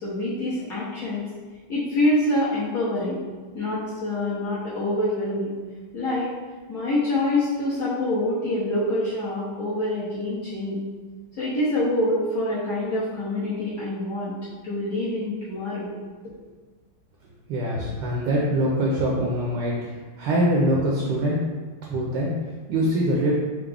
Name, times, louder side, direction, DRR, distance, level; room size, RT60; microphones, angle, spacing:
voice 1, 0.0-1.3 1.7-3.2 3.5-5.5 5.9-6.3 6.7-10.8 11.4-14.3 14.6-15.9, left 1 dB, 60° left, -10 dB, 1.0 m, -26 dB
voice 2, 17.5-19.9 20.2-21.4 21.9-22.4 22.7-23.3, equal, 75° right, -3 dB, 1.1 m, -23 dB
4.6 x 2.0 x 3.3 m, 1.4 s
omnidirectional pair, 2.3 m